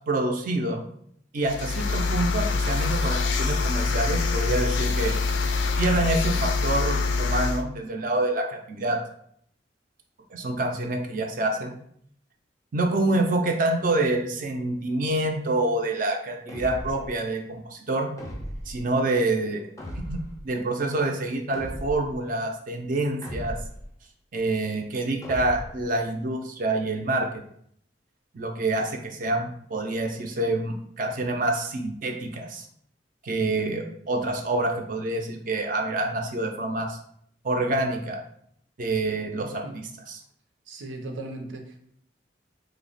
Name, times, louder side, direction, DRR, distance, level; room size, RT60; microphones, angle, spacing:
voice 1, 0.1-0.8 1.3-5.1 5.8-9.0 10.3-11.7 12.7-18.1 18.7-19.7 20.1-23.6 24.3-27.3 28.3-32.7 33.2-37.0 37.4-38.2 38.8-39.6 40.1-40.2, right 2 dB, 45° right, 2 dB, 0.4 m, -27 dB
sound 1, 1.5-7.6, left 4 dB, 75° left, 0.3 m, -25 dB
sound 2, 16.5-17.2 18.2-18.8 19.8-20.4 21.5-22.2 23.2-23.9 25.2-25.9, equal, 15° left, 0.5 m, -36 dB
voice 2, 39.4-39.7 40.7-41.8, right 2 dB, 90° right, 3 dB, 0.6 m, -37 dB
3.2 x 2.0 x 3.9 m, 0.66 s
head